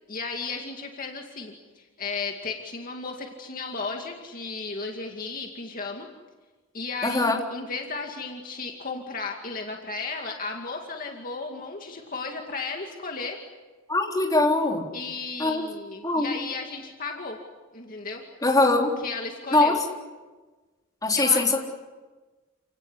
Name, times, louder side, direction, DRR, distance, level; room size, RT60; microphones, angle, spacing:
voice 1, 0.1-6.1 6.7-13.4 14.9-17.4 17.7-18.2 19.0-19.8 21.1-21.6, left 4 dB, 45° left, 2 dB, 2.3 m, -34 dB
voice 2, 7.0-7.4 13.9-14.8 15.4-15.6 16.0-16.3 18.4-18.9 19.5-19.7 21.0-21.5, left 2 dB, 20° left, 0 dB, 3.9 m, -21 dB
29.5 x 18.0 x 9.8 m, 1.3 s
head